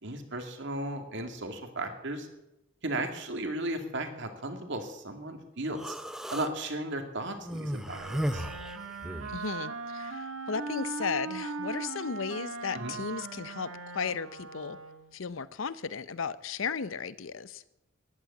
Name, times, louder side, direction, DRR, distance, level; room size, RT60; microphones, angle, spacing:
voice 1, 0.0-2.3 2.8-6.0 6.3-8.5 12.7-12.9, right 1 dB, 65° right, 5 dB, 2.3 m, -35 dB
Human voice, 5.8-6.5 7.4-9.4, equal, ahead, 0.7 m, -35 dB
Wind instrument woodwind instrument, 7.8-15.2, right 4 dB, 85° right, 1.5 m, -39 dB
voice 2, 9.3-14.8 15.1-17.6, left 5 dB, 80° left, 16 dB, 0.7 m, -35 dB
14.5 x 11.0 x 8.3 m, 0.91 s
head